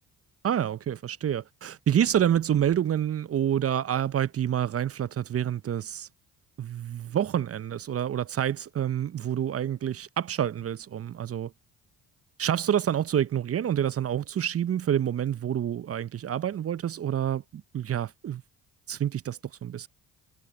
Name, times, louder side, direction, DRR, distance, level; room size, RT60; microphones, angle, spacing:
voice 1, 0.4-6.1 6.6-11.5 12.4-18.4 18.9-19.9, right 10 dB, 40° right, 0.7 m, -28 dB
hypercardioid pair, 55°, 37 cm